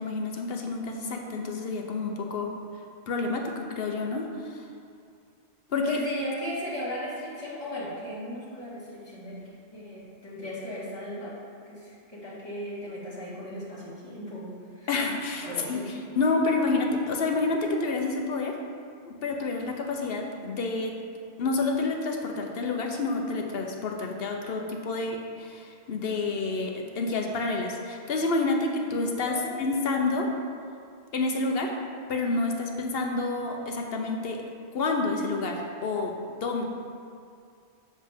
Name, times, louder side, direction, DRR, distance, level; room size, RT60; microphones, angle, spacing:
voice 1, 0.0-2.5 3.1-4.6 5.7-6.0 14.9-15.8 16.2-18.6 19.1-20.9 21.4-30.3 31.1-31.7 32.1-34.4 34.7-36.1 36.4-36.6, left 3 dB, 60° left, 2 dB, 1.0 m, -28 dB
voice 2, 5.9-9.4 9.7-11.3 11.7-14.9 15.4-15.9 29.2-29.6, equal, 20° left, -10 dB, 2.1 m, -37 dB
7.5 x 7.1 x 3.6 m, 2.3 s
omnidirectional pair, 1.2 m